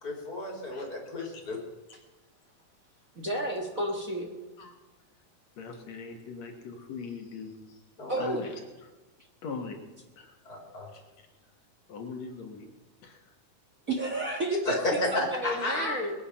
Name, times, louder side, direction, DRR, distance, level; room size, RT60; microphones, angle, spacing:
voice 1, 0.0-1.6 8.0-8.3 10.4-10.9 14.6-15.9, left 2 dB, 30° left, 0 dB, 3.2 m, -32 dB
voice 2, 3.2-4.3 8.1-8.4 13.9-16.1, right 1 dB, 35° right, 1 dB, 1.4 m, -31 dB
voice 3, 5.6-7.8 8.2-8.9 9.4-9.8 10.2-10.4 10.9-11.0 11.9-12.7 13.0-13.2, left 4 dB, 60° left, 3 dB, 2.6 m, -41 dB
21.5 x 9.5 x 5.7 m, 1.1 s
omnidirectional pair, 3.7 m